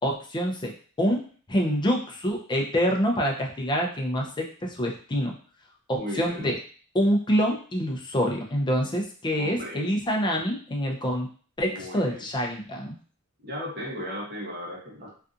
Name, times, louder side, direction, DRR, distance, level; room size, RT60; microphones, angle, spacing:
voice 1, 0.0-1.2 1.5-5.3 5.9-6.6 6.9-11.3 11.6-12.9, equal, 20° left, 1 dB, 0.4 m, -26 dB
voice 2, 5.9-6.5 9.3-9.9 11.7-12.3 13.4-15.2, equal, 50° right, -2 dB, 0.8 m, -36 dB
2.6 x 2.5 x 2.4 m, 0.43 s
head